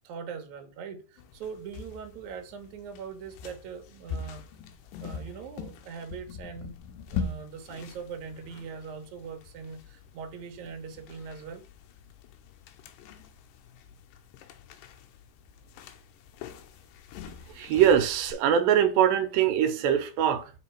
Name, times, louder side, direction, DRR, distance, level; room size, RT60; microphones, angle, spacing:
voice 1, 0.0-4.4 5.0-6.7 7.1-11.6, right 6 dB, 65° right, 2.2 m, -41 dB
sound 1, 1.2-18.3, left 5 dB, 80° left, 2.3 m, -43 dB
voice 2, 17.5-20.5, right 9 dB, 85° right, 2.5 m, -23 dB
6.8 x 4.5 x 4.4 m
omnidirectional pair, 4.0 m